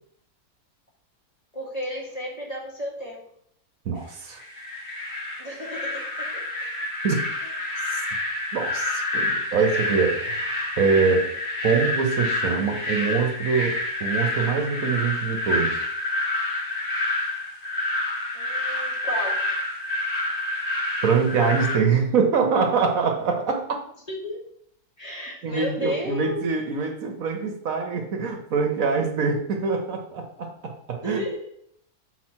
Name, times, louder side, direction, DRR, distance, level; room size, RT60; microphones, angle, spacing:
voice 1, 1.5-3.3 5.4-6.5 7.4-7.7 18.3-19.5 24.1-24.4 25.0-26.4 31.0-31.5, equal, 25° left, -4 dB, 1.8 m, -33 dB
voice 2, 3.8-4.4 7.0-7.3 8.5-11.3 11.6-15.8 21.0-23.8 25.4-31.3, right 5 dB, 65° right, 4 dB, 1.3 m, -24 dB
sound 1, 4.4-21.8, left 2 dB, 45° left, 1.8 m, -28 dB
7.3 x 4.3 x 4.5 m, 0.68 s
omnidirectional pair, 1.6 m